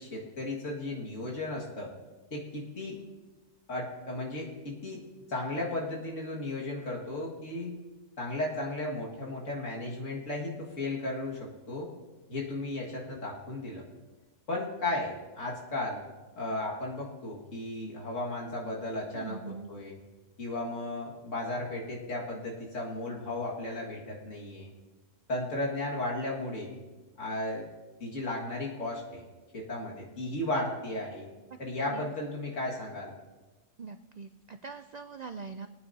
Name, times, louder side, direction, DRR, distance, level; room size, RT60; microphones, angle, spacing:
voice 1, 0.0-1.9 2.3-3.0 3.7-5.0 5.3-7.7 8.2-11.9 12.3-13.8 14.5-16.0 16.4-20.0 20.4-24.7 25.3-26.8 27.2-27.7 28.0-29.2 29.5-31.3 31.6-33.1, left 2 dB, 70° left, -3 dB, 2.2 m, -35 dB
voice 2, 19.1-19.7 31.8-32.0 33.8-35.7, right 5 dB, 80° right, 8 dB, 0.3 m, -42 dB
22.5 x 9.3 x 2.7 m, 1.2 s
omnidirectional pair, 1.3 m